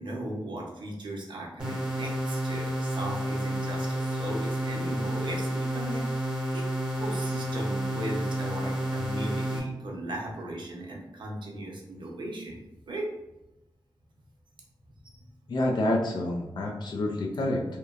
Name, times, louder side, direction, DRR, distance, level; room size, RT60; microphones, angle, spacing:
voice 1, 0.0-6.1 6.5-6.7 6.9-12.6 12.9-13.1 15.0-15.2, right 1 dB, 70° right, -1 dB, 0.6 m, -37 dB
sound 1, 1.6-9.6, equal, 10° right, 0.7 m, -30 dB
voice 2, 15.5-17.7, left 1 dB, 60° left, -1 dB, 0.4 m, -28 dB
2.9 x 2.1 x 2.3 m, 0.94 s
wide cardioid pair, 125°, 9 cm